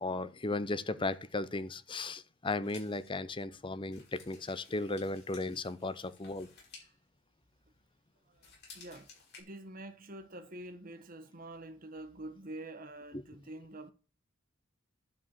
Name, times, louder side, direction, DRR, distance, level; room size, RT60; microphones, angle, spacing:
voice 1, 0.0-6.5 13.1-13.2, left 2 dB, 25° left, 0.6 m, -36 dB
sound 1, 2.6-8.0 8.3-9.4, left 5 dB, 50° left, 5.3 m, -56 dB
voice 2, 8.2-9.1 9.4-13.9, right 1 dB, 45° right, 1.3 m, -47 dB
11.5 x 4.8 x 7.3 m
head